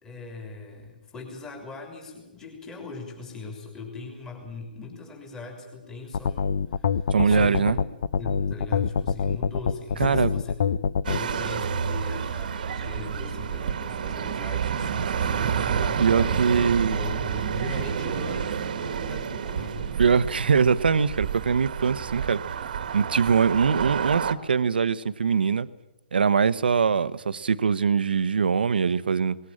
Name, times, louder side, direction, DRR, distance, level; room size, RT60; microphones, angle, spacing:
voice 1, 0.0-7.8 8.2-10.8 11.1-16.4 16.9-19.9, left 3 dB, 10° left, 1 dB, 3.4 m, -40 dB
sound 1, 6.1-11.2, left 6 dB, 65° left, 0.8 m, -25 dB
voice 2, 7.1-7.8 10.0-10.3 16.0-17.0 20.0-22.4 22.9-25.7 26.1-29.4, right 6 dB, 90° right, 14 dB, 0.9 m, -22 dB
sound 2, 11.0-24.3, right 7 dB, 65° right, 1.4 m, -29 dB
19.5 x 18.0 x 8.7 m, 1.0 s
hypercardioid pair, 155°, 5 cm